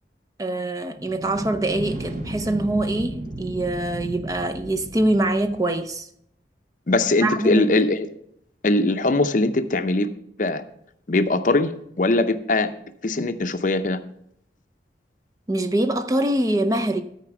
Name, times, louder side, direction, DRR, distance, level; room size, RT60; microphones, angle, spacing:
voice 1, 0.4-6.1 7.2-7.7 15.5-17.0, right 1 dB, 20° right, 0.5 m, -24 dB
sound 1, 0.9-5.8, right 1 dB, 45° right, 0.9 m, -34 dB
voice 2, 6.9-8.1 8.6-10.1 10.4-10.6 11.1-12.7 13.0-14.0, left 2 dB, 45° left, 0.6 m, -21 dB
13.0 x 4.5 x 5.9 m
head